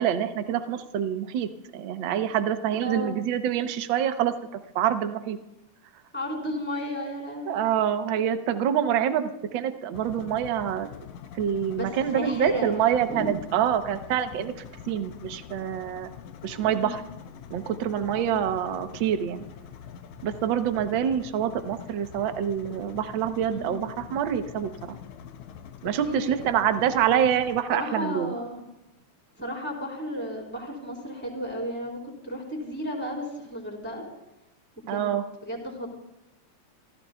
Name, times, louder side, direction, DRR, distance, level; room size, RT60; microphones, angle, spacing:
voice 1, 0.0-4.3 4.7-5.4 7.5-10.9 11.3-16.1 16.4-17.0 17.5-19.4 20.2-25.0 25.8-28.3 34.9-35.2, right 9 dB, 75° right, 8 dB, 1.1 m, -26 dB
voice 2, 2.8-3.1 6.1-7.6 11.7-13.3 16.5-17.1 17.4-17.5 23.5-23.8 26.1-26.5 27.7-28.7 29.4-34.0 34.9-35.1 35.4-35.9, equal, 5° left, -2 dB, 3.8 m, -33 dB
sound 1, 9.9-27.6, left 8 dB, 80° left, 2.1 m, -44 dB
28.0 x 15.5 x 2.3 m, 0.92 s
omnidirectional pair, 3.3 m